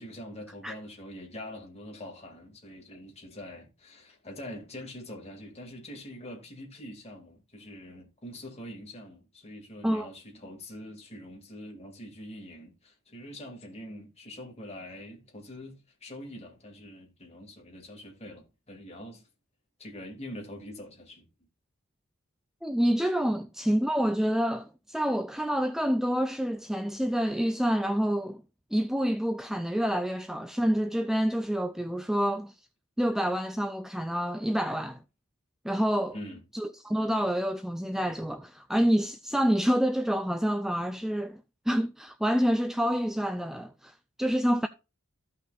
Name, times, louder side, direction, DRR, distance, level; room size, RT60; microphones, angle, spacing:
voice 1, 0.0-19.3 19.8-21.3 36.1-36.4, left 1 dB, 30° left, 2.6 m, -44 dB
voice 2, 22.6-28.4 28.7-32.5 33.0-35.0 35.6-36.1 36.5-41.4 41.7-44.7, equal, ahead, 0.4 m, -27 dB
15.0 x 5.6 x 2.5 m
head